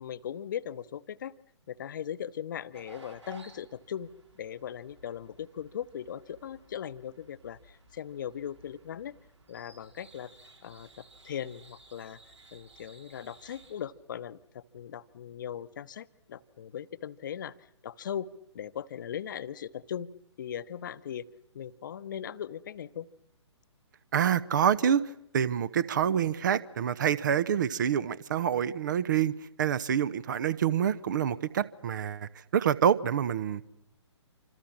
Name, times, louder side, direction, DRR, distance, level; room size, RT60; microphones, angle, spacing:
voice 1, 0.0-1.3 1.7-4.1 4.4-9.2 9.5-10.3 10.6-12.2 12.5-17.6 17.8-20.1 20.4-21.2 21.5-23.1, left 9 dB, 40° left, 15 dB, 1.0 m, -39 dB
sound 1, 2.7-13.9, right 3 dB, 70° right, 5.0 m, -56 dB
voice 2, 24.1-25.0 25.3-29.3 29.6-33.6, right 9 dB, 40° right, 19 dB, 0.9 m, -27 dB
27.0 x 26.0 x 7.3 m, 0.85 s
figure-of-eight pair, 130°, 15 cm